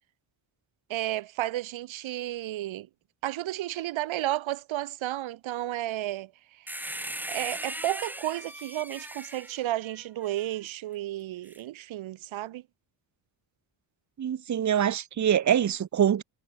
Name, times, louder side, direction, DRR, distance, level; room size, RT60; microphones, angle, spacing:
voice 1, 0.9-2.9 3.2-7.0 7.3-12.6, right 14 dB, 80° right, 1.4 m, -32 dB
sound 1, 6.7-10.5 11.5-11.6, right 1 dB, 5° right, 2.4 m, -38 dB
voice 2, 14.2-16.2, right 9 dB, 40° right, 1.3 m, -24 dB
cardioid pair, 160°, 46 cm